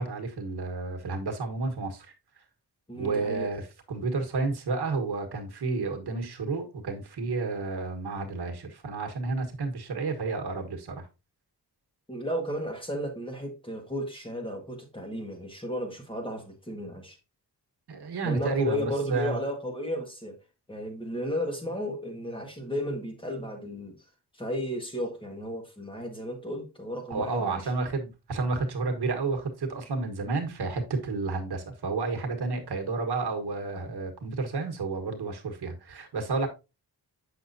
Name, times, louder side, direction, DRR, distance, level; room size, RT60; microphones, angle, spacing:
voice 1, 0.0-2.1 2.9-3.6 3.9-11.1 17.9-19.4 27.1-36.5, right 3 dB, 75° right, 1.4 m, -31 dB
voice 2, 2.9-3.5 12.1-17.2 18.2-20.4 20.7-24.0 24.3-27.6, equal, 10° left, 1.5 m, -34 dB
7.8 x 6.1 x 2.6 m
wide cardioid pair, 155°, 40 cm